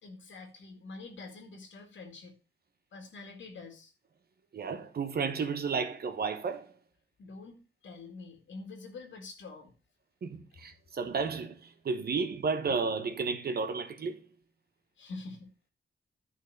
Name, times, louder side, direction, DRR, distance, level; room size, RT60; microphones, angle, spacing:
voice 1, 0.0-2.3 2.9-3.9 7.2-9.7 15.0-15.7, left 3 dB, 85° left, 2.1 m, -46 dB
voice 2, 4.5-6.7 10.2-14.2, right 5 dB, 55° right, 1.1 m, -32 dB
11.5 x 4.2 x 6.6 m
wide cardioid pair, 140°, 19 cm